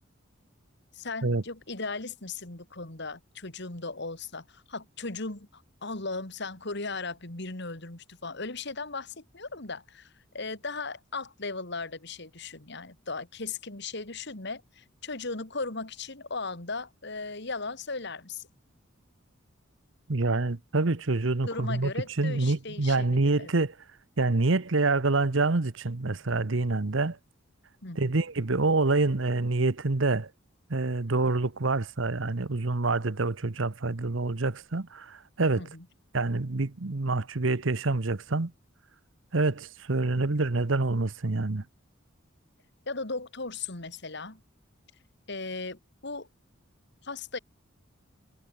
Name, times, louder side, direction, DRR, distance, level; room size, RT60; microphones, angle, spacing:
voice 1, 0.9-18.5 21.5-23.5 27.8-28.2 35.5-35.9 42.9-44.4 45.3-46.3 47.0-47.4, left 3 dB, 60° left, 3.0 m, -37 dB
voice 2, 20.1-21.9 22.2-23.7 24.2-27.2 28.0-30.3 30.7-35.6 36.1-38.5 39.3-41.6, right 3 dB, 70° right, 1.0 m, -26 dB
head